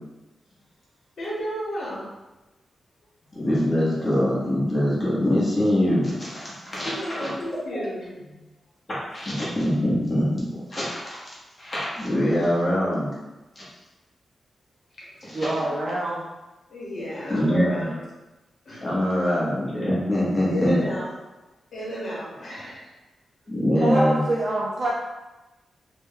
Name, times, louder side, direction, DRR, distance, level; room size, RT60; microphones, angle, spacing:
voice 1, 1.2-2.0 6.8-8.3 15.0-15.1 16.7-18.0 18.7-18.8 20.5-21.0 21.7-22.9 23.5-23.6, equal, 60° left, -6 dB, 1.2 m, -32 dB
voice 2, 3.3-7.8 8.9-11.3 11.6-13.1 13.6-13.7 15.2-15.4 17.3-17.9 18.8-20.8 23.5-24.2, equal, 20° left, -7 dB, 1.0 m, -24 dB
voice 3, 15.3-16.3 23.8-24.9, right 1 dB, 40° right, -4 dB, 0.4 m, -26 dB
3.0 x 2.2 x 3.5 m, 1.1 s
wide cardioid pair, 165°, 0 cm